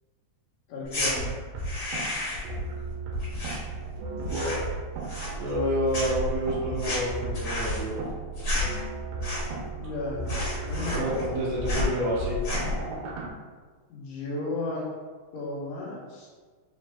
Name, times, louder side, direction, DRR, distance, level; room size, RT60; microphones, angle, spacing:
voice 1, 0.7-1.3 9.8-10.3 10.6-12.5 13.9-14.8 15.3-16.3, left 2 dB, 75° left, -6 dB, 2.3 m, -35 dB
sound 1, 0.8-1.1 1.6-2.5 2.8-4.0 4.2-4.7 5.0-5.7 5.9-9.7 10.0-10.1 10.3-11.4 11.6-11.9 12.3-12.8, left 2 dB, 50° left, 1.6 m, -31 dB
sound 2, 1.2-13.3, right 2 dB, 85° right, 2.1 m, -35 dB
voice 2, 4.1-4.6 5.1-8.0 10.9-12.4, equal, 65° right, -8 dB, 1.8 m, -29 dB
5.2 x 2.1 x 3.3 m, 1.5 s
omnidirectional pair, 3.5 m